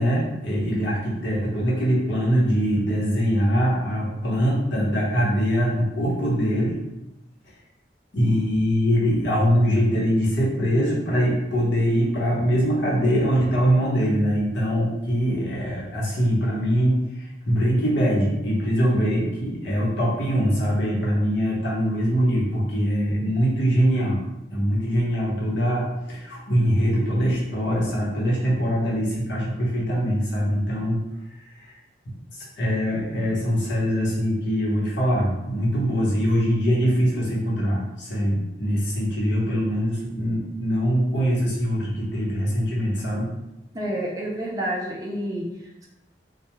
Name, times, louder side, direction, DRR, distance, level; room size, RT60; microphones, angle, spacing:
voice 1, 0.0-6.8 8.1-24.2 24.5-31.0 31.4-31.7 32.3-43.3, equal, 85° left, -5 dB, 0.9 m, -23 dB
voice 2, 43.7-45.5, right 1 dB, 20° right, -3 dB, 0.4 m, -28 dB
2.2 x 2.2 x 2.9 m, 0.94 s
head